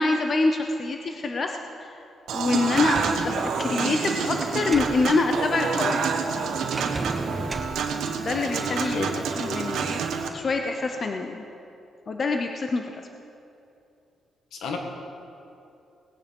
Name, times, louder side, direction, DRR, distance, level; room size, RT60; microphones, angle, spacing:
voice 1, 0.0-1.9 2.3-6.1 8.2-10.0 10.3-11.4 12.1-12.9, left 3 dB, 40° left, 4 dB, 0.8 m, -26 dB
Human voice / Acoustic guitar / Piano, 2.3-10.3, right 6 dB, 85° right, 1.2 m, -28 dB
Sliding door, 2.7-5.0 6.7-7.8, right 2 dB, 25° right, 1.2 m, -34 dB
voice 2, 8.7-9.1 14.5-14.8, left 4 dB, 80° left, 3 dB, 1.9 m, -31 dB
18.5 x 9.6 x 5.4 m, 2.7 s
cardioid pair, 115°, 0 cm